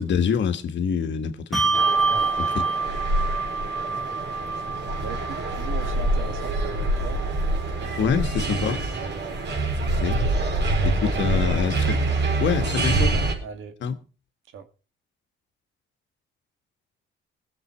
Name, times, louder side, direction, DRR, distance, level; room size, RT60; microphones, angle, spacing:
voice 1, 0.0-1.8 2.4-2.7 4.4-4.6 8.0-8.8 10.0-10.2 10.8-12.0 12.4-13.2 13.8-14.0, left 7 dB, 70° left, 1.6 m, -26 dB
Bell, 1.5-8.4, right 4 dB, ahead, 1.8 m, -28 dB
sound 1, 1.7-13.3, right 2 dB, 60° right, 4.6 m, -26 dB
voice 2, 5.0-7.2 7.8-7.9 10.3-10.5 10.8-11.4 13.4-13.7 14.5-14.6, right 6 dB, 85° right, 2.1 m, -38 dB
20.5 x 7.5 x 4.5 m
cardioid pair, 90°, 20 cm